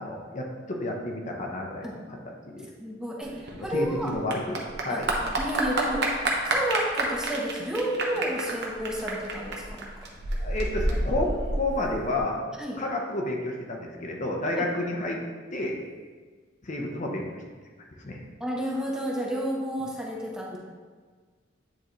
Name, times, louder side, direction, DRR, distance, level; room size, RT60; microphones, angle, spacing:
voice 1, 0.0-1.9 2.5-2.7 3.7-5.1 10.4-12.4 12.8-15.2 15.5-15.8 16.6-17.4 18.0-18.2 20.5-20.6, left 1 dB, 40° left, 1 dB, 0.7 m, -30 dB
voice 2, 2.8-4.1 4.9-5.0 5.4-6.1 6.5-9.9 12.6-12.8 14.6-14.7 18.4-20.6, right 1 dB, 5° right, -2 dB, 0.8 m, -31 dB
Clapping / Applause, 3.2-12.2, right 2 dB, 60° right, 0.9 m, -29 dB
8.9 x 3.8 x 3.0 m, 1.5 s
head